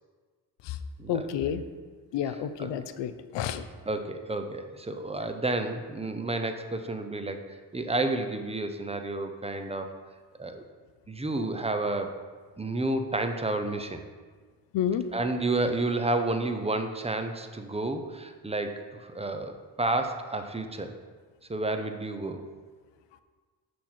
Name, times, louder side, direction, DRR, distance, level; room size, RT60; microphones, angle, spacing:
voice 1, 1.1-1.6 2.1-3.6 14.7-15.1, left 9 dB, 75° left, 11 dB, 0.7 m, -30 dB
voice 2, 3.9-9.9 10.4-10.6 11.1-12.2 12.6-14.0 15.1-20.9 21.5-22.4, right 2 dB, 15° right, 7 dB, 0.7 m, -30 dB
6.4 x 5.8 x 4.3 m, 1.5 s
supercardioid pair, 65°, 44 cm